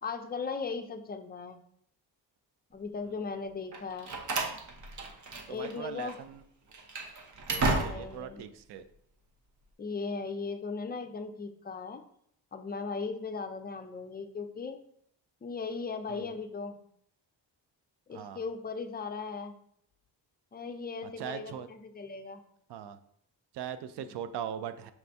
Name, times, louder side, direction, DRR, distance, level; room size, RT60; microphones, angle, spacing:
voice 1, 0.0-1.6 2.7-4.2 5.5-6.2 7.6-8.5 9.8-12.0 12.5-14.8 15.4-16.8 18.1-19.5 20.5-22.4 24.0-24.1, left 4 dB, 25° left, 7 dB, 0.4 m, -38 dB
Slam, 3.7-5.7 6.0-6.2 6.7-8.3, right 3 dB, 45° right, 0.8 m, -33 dB
voice 2, 5.5-6.4 7.5-8.9 16.1-16.3 18.1-18.4 21.2-21.7 22.7-23.0 23.5-24.9, right 9 dB, 70° right, 11 dB, 0.5 m, -40 dB
5.9 x 2.6 x 3.3 m, 0.68 s
cardioid pair, 95°, 42 cm